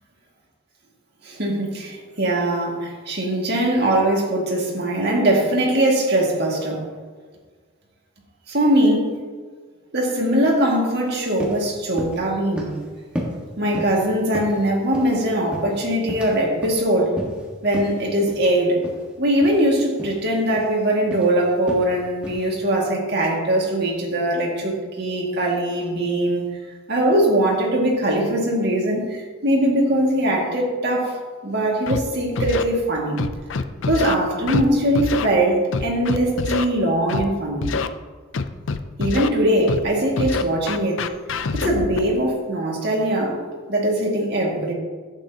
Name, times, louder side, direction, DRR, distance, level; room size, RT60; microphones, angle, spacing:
voice 1, 1.2-6.8 8.5-9.2 9.9-12.7 13.6-17.1 17.6-18.8 19.2-26.4 26.9-33.2 33.9-37.7 39.0-41.0 41.5-43.4 43.7-44.7, right 1 dB, 55° right, -2 dB, 2.1 m, -21 dB
sound 1, 11.0-11.1 11.4-11.6 12.0-12.2 12.6-12.8 13.1-13.4 13.7-14.0 14.3-15.2 15.5-16.3 16.6-16.8 17.2-17.4 17.7-17.9 18.3-18.5 18.8-19.0 19.3-19.6 20.0-20.2 20.5-20.8 21.1-21.3 21.7-21.9 22.2-22.4, equal, 5° right, 1.5 m, -32 dB
Scratching (performance technique), 31.9-32.0 32.4-32.6 33.2-34.1 34.5-34.7 35.0-35.3 35.7-36.6 37.1-37.2 37.6-37.9 38.3-39.3 39.7-39.8 40.2-42.0, left 4 dB, 70° left, 0.5 m, -25 dB
11.0 x 8.7 x 2.9 m, 1.5 s
head